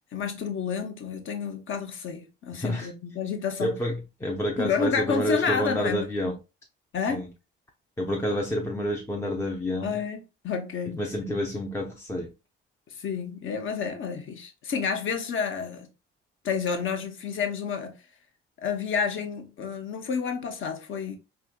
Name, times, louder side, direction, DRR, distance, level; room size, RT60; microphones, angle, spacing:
voice 1, 0.1-3.7 4.6-6.0 6.9-7.2 9.8-11.0 12.9-15.9 16.4-18.0 18.6-21.2, left 6 dB, 40° left, 0.8 m, -30 dB
voice 2, 2.5-2.9 3.6-6.3 7.1-7.3 8.0-10.0 10.9-12.3, equal, 10° left, 0.6 m, -29 dB
4.5 x 2.8 x 2.2 m
figure-of-eight pair, 50°, 31 cm